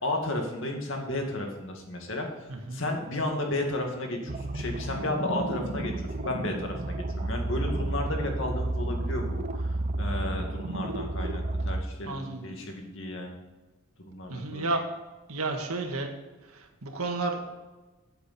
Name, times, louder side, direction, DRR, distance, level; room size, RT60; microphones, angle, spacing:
voice 1, 0.0-2.3 2.7-13.4 14.0-14.7, left 1 dB, 60° left, 2 dB, 2.3 m, -33 dB
voice 2, 2.5-2.8 12.1-12.5 14.3-14.8 15.3-16.1 16.5-17.4, right 3 dB, 90° right, 3 dB, 1.9 m, -31 dB
sound 1, 4.3-11.8, right 2 dB, 35° right, 0.6 m, -31 dB
13.5 x 8.0 x 4.4 m, 1.2 s
head